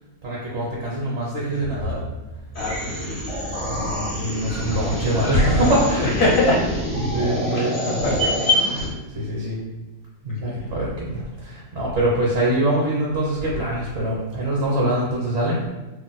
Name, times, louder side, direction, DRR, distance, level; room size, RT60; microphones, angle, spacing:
voice 1, 0.2-2.0 3.6-6.1 7.0-8.0 8.7-8.9 9.1-9.6 10.2-15.6, right 1 dB, 55° right, -5 dB, 0.9 m, -24 dB
voice 2, 2.5-3.2 5.9-6.6 7.5-8.7 10.3-10.7, left 1 dB, 70° left, -2 dB, 1.1 m, -24 dB
sound 1, 2.5-8.9, left 1 dB, 10° right, 0.4 m, -26 dB
2.5 x 2.1 x 3.9 m, 1.2 s
omnidirectional pair, 1.5 m